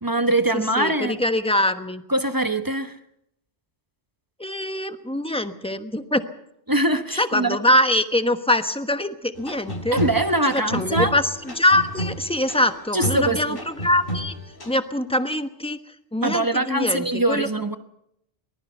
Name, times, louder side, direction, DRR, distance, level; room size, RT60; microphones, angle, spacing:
voice 1, 0.0-1.2 2.1-3.0 6.7-7.6 9.9-11.1 12.9-13.6 16.2-17.8, right 1 dB, 20° right, 1.0 m, -22 dB
voice 2, 0.5-2.0 4.4-6.3 7.2-10.0 10.4-14.3 14.7-15.8 16.1-17.5, left 1 dB, 5° left, 1.1 m, -23 dB
sound 1, 9.3-14.8, right 1 dB, 55° left, 3.4 m, -31 dB
23.5 x 19.5 x 5.6 m
omnidirectional pair, 1.1 m